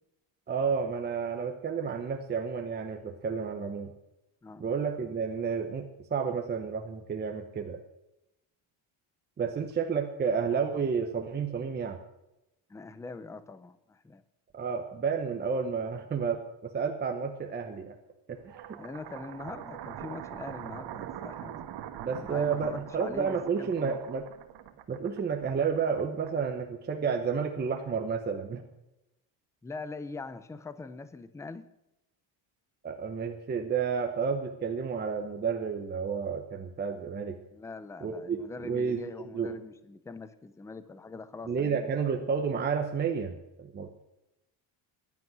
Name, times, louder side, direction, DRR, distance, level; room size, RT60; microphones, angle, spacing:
voice 1, 0.5-3.9 4.6-7.8 9.4-12.0 14.5-17.9 18.3-18.8 22.0-24.2 24.9-28.6 32.8-37.4 38.0-39.5 41.5-43.9, right 6 dB, 20° right, 3 dB, 0.9 m, -31 dB
voice 2, 12.7-14.2 18.8-21.6 22.2-24.0 29.6-31.7 37.5-42.0, left 3 dB, 5° left, 13 dB, 0.5 m, -43 dB
sound 1, 18.4-26.7, right 11 dB, 55° right, 1.4 m, -43 dB
15.0 x 11.0 x 6.1 m, 0.90 s
cardioid pair, 175°, 48 cm